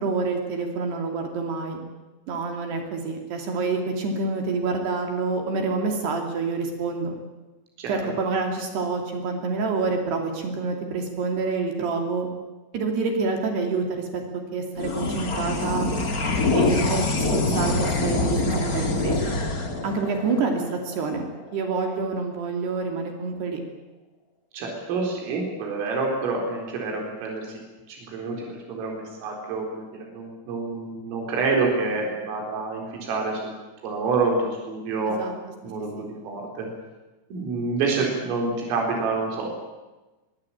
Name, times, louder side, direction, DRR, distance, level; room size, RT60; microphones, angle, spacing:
voice 1, 0.0-1.8 2.3-7.2 7.9-12.3 12.7-14.2 14.5-15.9 16.5-19.4 19.8-21.3 21.5-23.6 35.1-35.3 36.0-36.1, right 4 dB, 60° right, 3 dB, 4.6 m, -27 dB
voice 2, 7.8-8.1 24.5-33.5 33.8-35.2 35.6-36.7 37.3-39.5, right 3 dB, 85° right, 0 dB, 6.9 m, -28 dB
sound 1, 14.8-21.5, left 3 dB, 50° left, 1.0 m, -25 dB
23.0 x 22.0 x 8.8 m, 1.1 s
omnidirectional pair, 5.7 m